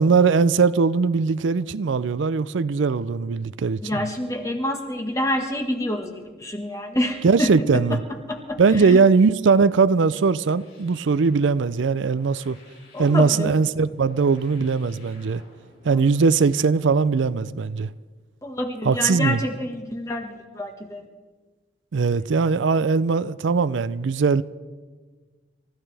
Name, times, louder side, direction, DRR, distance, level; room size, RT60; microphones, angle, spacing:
voice 1, 0.0-3.8 7.2-8.0 8.6-12.6 13.0-15.4 15.8-17.9 18.8-19.4 21.9-24.4, right 5 dB, 80° right, 0.5 m, -20 dB
voice 2, 3.8-8.0 8.3-9.0 12.9-13.5 15.9-16.1 18.4-21.0, left 1 dB, 15° left, 1.5 m, -28 dB
sound 1, 10.4-16.5, left 2 dB, 80° left, 6.0 m, -54 dB
28.0 x 14.0 x 3.4 m
head